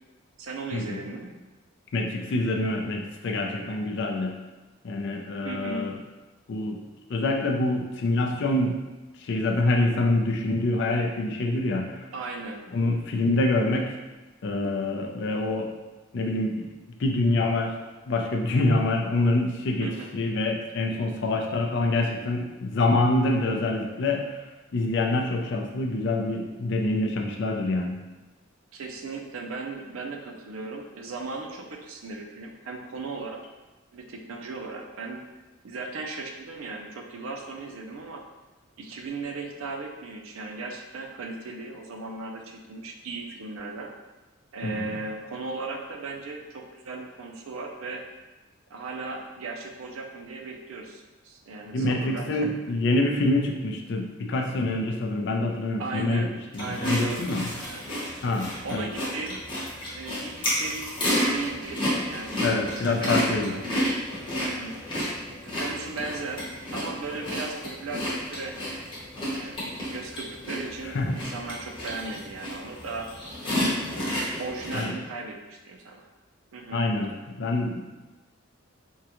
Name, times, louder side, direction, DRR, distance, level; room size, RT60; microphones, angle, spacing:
voice 1, 0.4-1.3 5.4-5.9 12.1-12.6 19.8-20.1 28.7-33.4 33.9-35.2 35.6-38.2 38.8-43.9 44.5-48.0 48.7-52.5 55.8-56.3 56.6-57.2 57.5-57.9 58.6-59.5 59.9-63.9 64.4-64.7 65.4-68.6 69.3-73.1 74.4-76.1 76.5-76.8, right 3 dB, 90° right, 3 dB, 0.4 m, -37 dB
voice 2, 1.9-4.3 4.8-6.0 6.5-6.8 7.1-8.8 9.2-11.9 12.7-13.9 14.4-15.7 16.1-16.7 17.0-17.7 18.1-24.2 24.7-28.0 44.6-44.7 51.7-56.3 56.5-57.5 58.2-58.9 62.4-63.6 70.9-71.1 74.7-74.9 76.7-77.9, left 2 dB, 60° left, 2 dB, 0.4 m, -26 dB
sound 1, 56.5-74.8, equal, 25° left, 0.9 m, -31 dB
3.6 x 2.2 x 2.9 m, 1.2 s
head